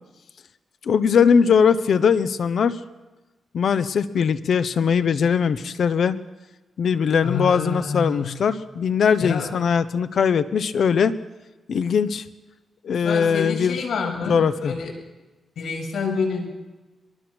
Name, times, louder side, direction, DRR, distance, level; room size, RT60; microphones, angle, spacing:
voice 1, 0.9-2.8 3.5-6.2 6.8-11.1 11.7-12.2 12.8-13.8 14.2-14.7, left 6 dB, 60° left, 12 dB, 1.0 m, -20 dB
voice 2, 7.2-8.4 9.2-9.5 13.0-14.9 15.6-16.4, left 4 dB, 80° left, 0 dB, 7.8 m, -27 dB
24.5 x 23.0 x 6.3 m, 1.1 s
wide cardioid pair, 140°, 0 cm